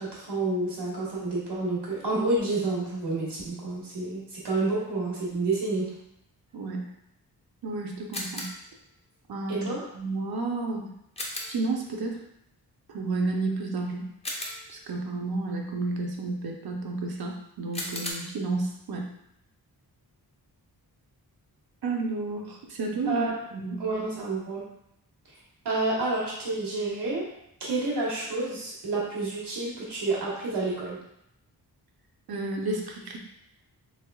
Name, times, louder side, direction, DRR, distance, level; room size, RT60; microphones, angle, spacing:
voice 1, 0.0-5.9 9.5-9.8 23.1-23.3 23.8-24.6 25.6-27.3 27.6-31.0, right 2 dB, 90° right, -5 dB, 1.2 m, -29 dB
voice 2, 6.5-6.9 7.6-8.5 9.3-9.7 9.9-10.9 11.5-12.2 12.9-14.1 14.7-19.1 21.8-23.3 23.5-23.8 32.3-33.2, right 3 dB, 65° right, 0 dB, 0.6 m, -31 dB
sound 1, 8.1-8.7 11.2-11.7 14.2-14.9 17.7-18.1, left 1 dB, 15° left, 0.4 m, -35 dB
3.4 x 3.2 x 2.2 m, 0.78 s
wide cardioid pair, 160°, 40 cm